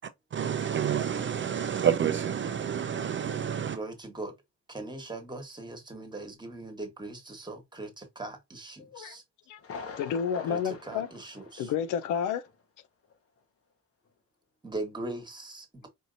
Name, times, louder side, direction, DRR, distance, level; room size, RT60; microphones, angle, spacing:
voice 1, 0.3-3.8, right 8 dB, 40° right, 0.5 m, -29 dB
voice 2, 3.7-4.3 4.7-9.2 10.5-11.7 14.6-15.9, right 2 dB, 15° right, 1.4 m, -40 dB
Thunder, 9.6-12.2 12.5-12.6 13.1-13.2, left 5 dB, 50° left, 1.0 m, -44 dB
voice 3, 10.0-11.1 11.6-12.4, left 8 dB, 90° left, 0.5 m, -30 dB
4.5 x 2.8 x 2.5 m
cardioid pair, 90°, 30 cm